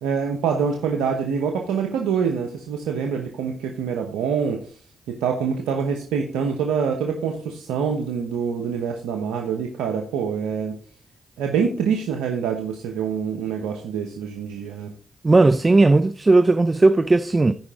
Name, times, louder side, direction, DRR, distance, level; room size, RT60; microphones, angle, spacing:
voice 1, 0.0-4.6 5.1-10.7 11.4-14.9, right 6 dB, 90° right, 0.9 m, -25 dB
voice 2, 15.2-17.5, right 3 dB, 30° right, 0.5 m, -16 dB
14.5 x 5.0 x 3.6 m
supercardioid pair, 50°, 0 cm